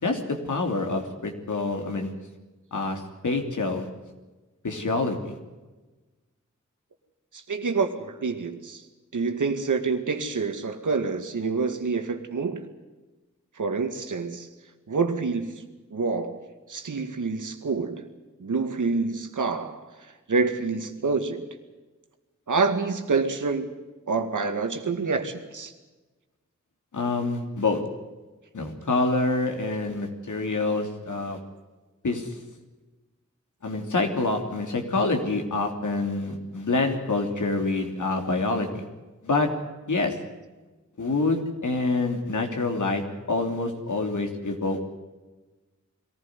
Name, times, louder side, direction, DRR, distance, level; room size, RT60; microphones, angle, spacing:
voice 1, 0.0-2.1 2.7-3.9 4.6-5.3 26.9-27.8 28.5-31.4 32.0-32.3 33.6-38.8 39.2-39.5 39.9-40.1 41.0-44.9, left 3 dB, 80° left, 3 dB, 3.2 m, -26 dB
voice 2, 7.3-8.8 9.1-12.6 13.6-14.5 14.9-15.5 15.9-16.4 16.7-18.1 18.4-19.8 20.3-21.4 22.5-23.7 24.1-25.7, right 4 dB, 85° right, 6 dB, 2.0 m, -27 dB
22.0 x 15.0 x 9.6 m, 1.2 s
cardioid pair, 40°, 30 cm